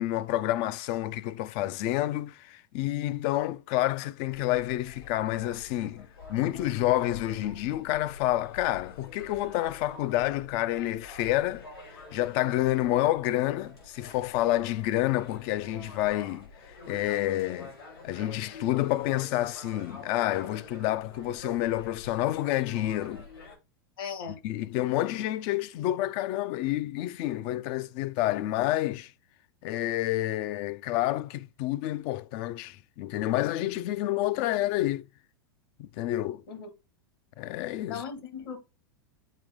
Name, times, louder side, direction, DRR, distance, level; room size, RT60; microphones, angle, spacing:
voice 1, 0.0-11.6 12.1-17.8 18.0-23.2 24.4-29.1 29.6-35.1 35.8-36.4 37.4-38.0, left 15 dB, 45° left, 0.5 m, -29 dB
sound 1, 4.2-23.6, left 3 dB, 90° left, 4.9 m, -47 dB
voice 2, 24.0-24.4 36.5-36.7 37.9-38.6, left 6 dB, 65° left, 1.8 m, -37 dB
7.3 x 4.6 x 3.6 m
figure-of-eight pair, 95°, 12 cm